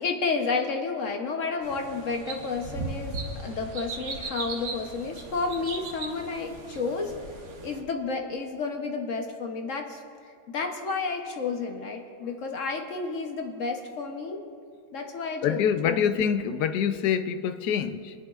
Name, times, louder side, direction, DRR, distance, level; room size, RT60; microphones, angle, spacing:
voice 1, 0.0-7.1 7.6-10.0 10.5-14.4 14.9-16.0, left 4 dB, 60° left, 3 dB, 1.1 m, -31 dB
sound 1, 1.6-7.8, right 3 dB, 85° right, 1.8 m, -38 dB
voice 2, 15.4-18.1, left 8 dB, 85° left, 10 dB, 1.2 m, -25 dB
23.5 x 10.0 x 2.4 m, 2.4 s
omnidirectional pair, 1.7 m